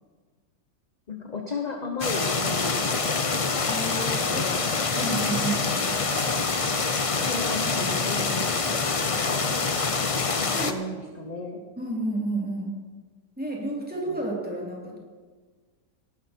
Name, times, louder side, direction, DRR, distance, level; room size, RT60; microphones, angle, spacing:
voice 1, 1.1-2.8 4.3-4.7 7.1-9.0 10.3-11.6, left 3 dB, 30° left, 2 dB, 1.0 m, -34 dB
sound 1, 2.0-10.7, left 4 dB, 45° left, 0.4 m, -26 dB
voice 2, 3.7-4.5 4.9-6.0 9.5-9.6 10.5-10.8 11.8-12.8 13.4-15.0, right 2 dB, 5° right, -3 dB, 3.1 m, -31 dB
18.0 x 11.5 x 4.5 m, 1.5 s
omnidirectional pair, 1.8 m